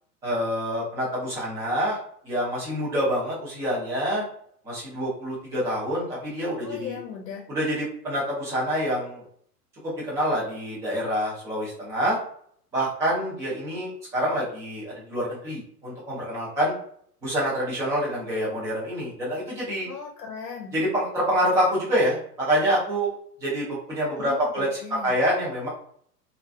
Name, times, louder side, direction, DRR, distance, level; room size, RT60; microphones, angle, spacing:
voice 1, 0.2-2.0 2.2-4.2 4.6-7.0 7.5-9.2 9.8-12.2 12.7-16.7 17.2-19.9 20.7-23.1 23.4-25.7, equal, 5° right, -7 dB, 0.3 m, -26 dB
voice 2, 6.6-7.4 19.9-20.7 24.2-25.1, left 6 dB, 70° left, 0 dB, 0.7 m, -38 dB
2.4 x 2.3 x 2.3 m, 0.62 s
figure-of-eight pair, 100°, 48 cm